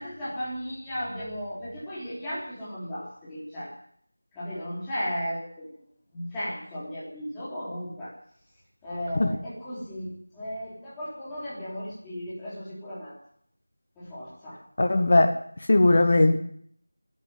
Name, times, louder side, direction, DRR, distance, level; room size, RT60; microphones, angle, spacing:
voice 1, 0.0-3.7 4.3-5.6 6.1-8.1 8.8-13.2 14.0-14.6 15.8-16.0, equal, 5° left, -10 dB, 3.5 m, -35 dB
voice 2, 14.8-15.4 15.7-16.4, left 2 dB, 35° left, 7 dB, 1.3 m, -19 dB
15.0 x 10.0 x 9.5 m, 0.65 s
figure-of-eight pair, 175°, 0 cm